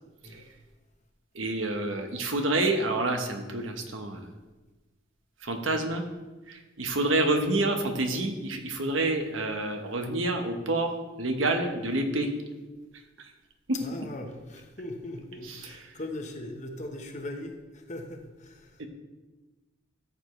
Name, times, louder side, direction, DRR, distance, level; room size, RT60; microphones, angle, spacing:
voice 1, 1.3-4.3 5.4-6.0 6.5-10.9 11.2-12.3 13.2-13.3 13.7-13.8 15.4-15.9 18.8-18.9, right 2 dB, 75° right, 5 dB, 1.2 m, -28 dB
voice 2, 13.7-18.8, left 1 dB, 35° left, 4 dB, 1.1 m, -39 dB
13.5 x 7.0 x 3.2 m, 1.2 s
head